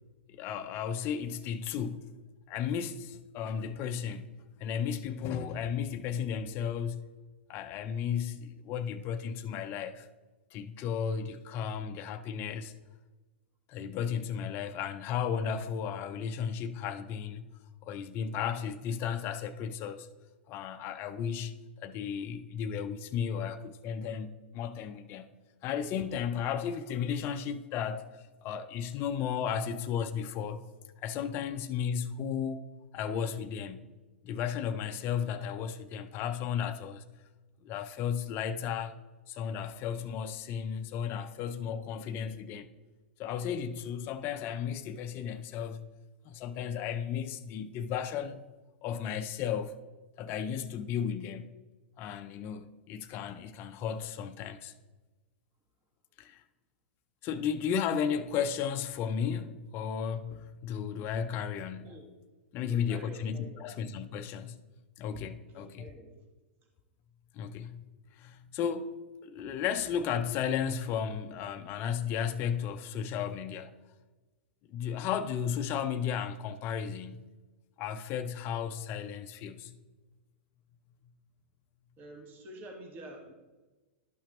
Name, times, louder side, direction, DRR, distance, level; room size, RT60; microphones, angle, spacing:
voice 1, 0.3-2.1 2.5-4.3 4.6-7.0 7.5-10.1 10.5-12.8 13.7-17.4 17.8-20.1 20.5-25.3 25.6-28.1 28.4-30.6 31.0-33.9 34.2-37.0 37.6-39.0 39.3-42.7 43.2-45.9 46.2-48.4 48.8-49.8 50.2-51.5 52.0-54.7 56.2-56.4 57.2-62.0 62.5-64.6 65.0-65.9 67.3-68.9 69.2-73.7 74.7-77.2 77.8-79.8, left 8 dB, 35° left, 0.5 m, -34 dB
voice 2, 62.6-63.7 65.5-66.1 82.0-83.3, right 1 dB, 30° right, 1.6 m, -48 dB
11.5 x 5.8 x 2.9 m
hypercardioid pair, 120°, 7 cm